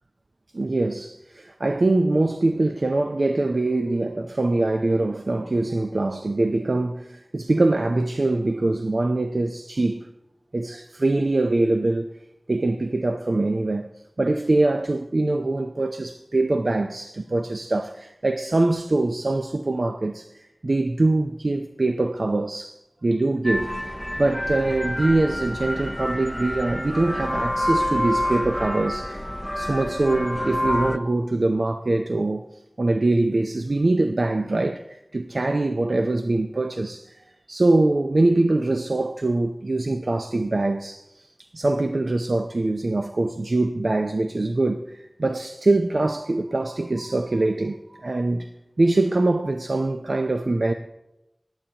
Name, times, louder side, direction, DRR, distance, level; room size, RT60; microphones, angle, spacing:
voice 1, 0.5-10.1 10.5-12.1 12.5-13.9 14.2-29.3 29.5-32.4 32.8-48.5 48.8-50.7, right 2 dB, 75° right, 0.5 m, -23 dB
sound 1, 23.4-31.0, left 1 dB, 10° left, 0.5 m, -28 dB
20.0 x 8.9 x 2.9 m
wide cardioid pair, 45°, 0 cm